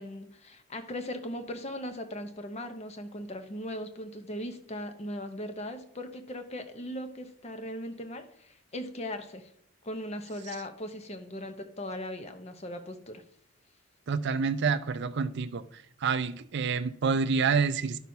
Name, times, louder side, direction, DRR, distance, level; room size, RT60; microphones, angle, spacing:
voice 1, 0.0-9.5 9.8-13.2, left 1 dB, 30° left, 0.7 m, -39 dB
voice 2, 14.1-15.6 16.0-18.0, right 5 dB, 50° right, 0.4 m, -27 dB
11.5 x 6.0 x 2.7 m
head